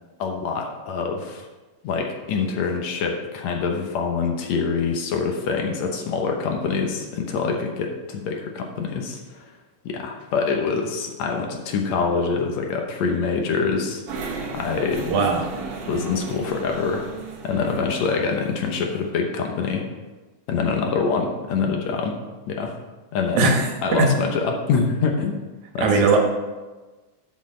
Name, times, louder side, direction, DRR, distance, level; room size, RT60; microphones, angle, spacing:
voice 1, 0.2-1.5 1.8-9.5 9.9-14.0 14.5-15.1 15.9-17.1 17.4-19.9 20.5-22.2 22.5-22.7 23.1-23.5 23.8-25.4 25.7-26.2, left 5 dB, 70° left, 3 dB, 2.1 m, -25 dB
sound 1, 14.1-19.1, right 4 dB, 60° right, 1.9 m, -35 dB
voice 2, 15.1-15.5 23.3-24.1 25.8-26.2, right 4 dB, 75° right, 2 dB, 2.7 m, -19 dB
12.5 x 6.3 x 3.8 m, 1.2 s
omnidirectional pair, 3.4 m